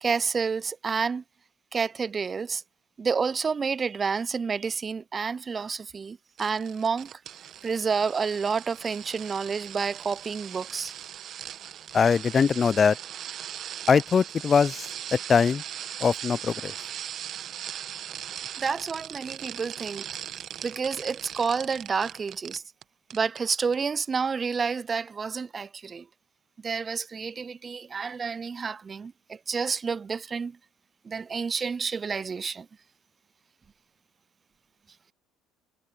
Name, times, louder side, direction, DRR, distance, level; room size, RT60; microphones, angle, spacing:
voice 1, 0.0-1.2 1.7-2.6 3.0-7.1 7.6-10.9 18.6-20.1 20.6-22.6 23.1-26.1 26.6-30.6 31.0-32.7, right 5 dB, 30° right, 0.4 m, -29 dB
sound 1, 6.4-22.8 23.1-23.4 23.7-23.8, right 10 dB, 55° right, 1.3 m, -39 dB
voice 2, 11.9-13.0 13.9-14.9 15.3-15.6 16.0-16.7, left 6 dB, 35° left, 0.4 m, -21 dB
hypercardioid pair, 75°, 0 cm